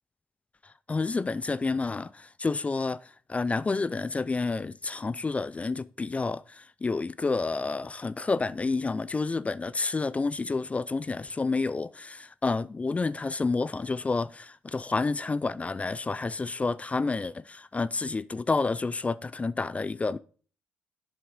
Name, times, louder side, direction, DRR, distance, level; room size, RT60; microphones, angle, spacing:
voice 1, 0.6-20.2, left 3 dB, 25° left, 0.4 m, -29 dB
7.8 x 6.3 x 5.0 m
hypercardioid pair, 50°, 5 cm